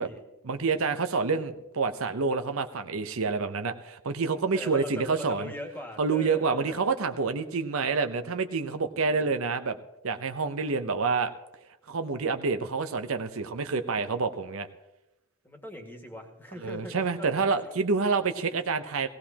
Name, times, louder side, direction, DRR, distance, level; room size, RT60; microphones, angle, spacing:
voice 1, 0.4-5.5 6.0-9.8 10.0-11.3 11.9-14.7 16.6-19.1, right 4 dB, 65° right, 8 dB, 0.7 m, -28 dB
voice 2, 4.5-6.8 9.0-9.5 15.4-17.8, left 1 dB, 10° left, 2 dB, 1.8 m, -41 dB
17.5 x 17.0 x 2.9 m, 0.93 s
head